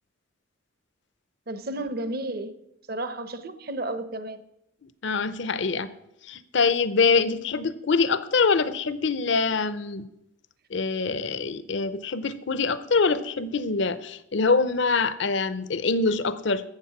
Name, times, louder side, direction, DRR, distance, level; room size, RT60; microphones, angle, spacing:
voice 1, 1.5-2.5 2.9-4.4, right 2 dB, 50° right, 12 dB, 0.8 m, -32 dB
voice 2, 5.0-5.9 6.2-10.1 10.7-16.6, left 4 dB, 65° left, 14 dB, 0.7 m, -24 dB
13.0 x 7.8 x 6.0 m, 0.84 s
head